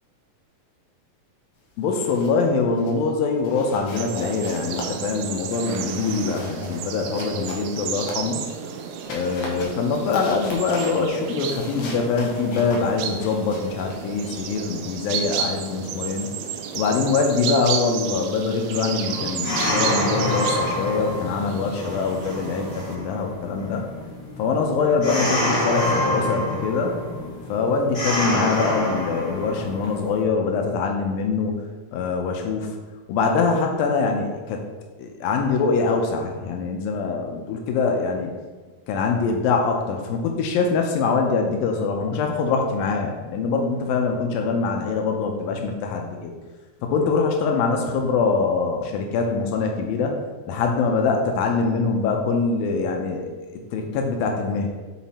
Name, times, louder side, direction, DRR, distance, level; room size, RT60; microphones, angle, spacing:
voice 1, 1.8-8.4 9.1-16.3 16.7-23.9 24.4-27.0 27.5-31.5 31.9-32.8 33.1-34.6 35.0-38.3 38.9-46.3 46.8-50.2 50.5-54.7, left 4 dB, 90° left, 2 dB, 2.5 m, -24 dB
sound 1, 1.8-2.5 2.8-3.0 3.4-8.6 9.0-14.9, left 2 dB, 65° left, 1.5 m, -39 dB
sound 2, 3.9-23.0, right 7 dB, 90° right, 1.7 m, -32 dB
sound 3, 19.1-30.2, left 1 dB, 40° left, 2.4 m, -27 dB
5.7 x 5.1 x 4.2 m, 1.3 s
omnidirectional pair, 4.1 m